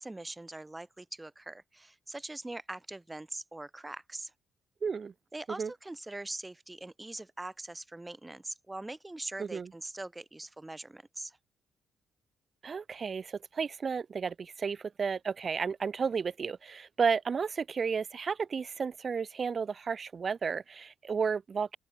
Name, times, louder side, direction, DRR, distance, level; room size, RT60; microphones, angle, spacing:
voice 1, 0.0-4.3 5.3-11.4, right 2 dB, 15° right, 2.0 m, -42 dB
voice 2, 4.8-5.1 5.6-5.7 9.4-9.7 12.6-21.8, right 5 dB, 40° right, 2.4 m, -32 dB
open air
cardioid pair, 90°, 0 cm